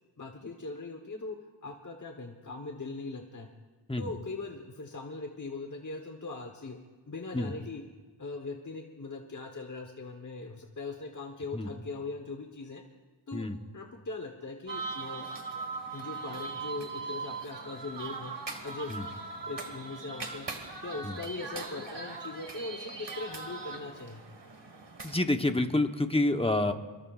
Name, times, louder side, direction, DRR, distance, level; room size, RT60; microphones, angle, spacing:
voice 1, 0.2-3.5 4.0-6.8 7.1-7.8 8.2-12.8 13.3-13.5 13.7-15.3 15.9-18.3 18.6-20.5 20.8-24.2, left 3 dB, 40° left, 3 dB, 1.1 m, -40 dB
sound 1, 14.7-25.2, right 4 dB, 65° right, 1.8 m, -40 dB
voice 2, 25.0-26.7, left 2 dB, 10° left, 6 dB, 1.0 m, -28 dB
25.0 x 21.5 x 2.5 m, 1.3 s
wide cardioid pair, 70°, 46 cm